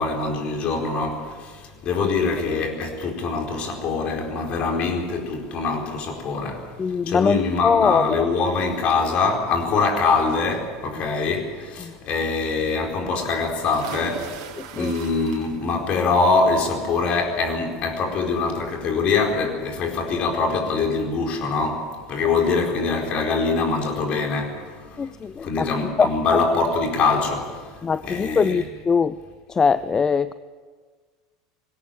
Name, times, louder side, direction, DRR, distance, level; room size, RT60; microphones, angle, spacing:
voice 1, 0.0-14.4 14.7-28.6, left 4 dB, 45° left, 4.5 m, -24 dB
voice 2, 6.8-8.3 11.8-11.9 14.6-14.9 25.0-25.7 26.0-26.4 27.8-29.2 29.5-30.3, left 5 dB, 25° left, 0.5 m, -22 dB
sound 1, 13.7-15.8 16.2-16.6 18.0-18.1 18.5-18.6, right 8 dB, 65° right, 3.4 m, -39 dB
20.5 x 17.5 x 8.8 m
hypercardioid pair, 85°, 3 cm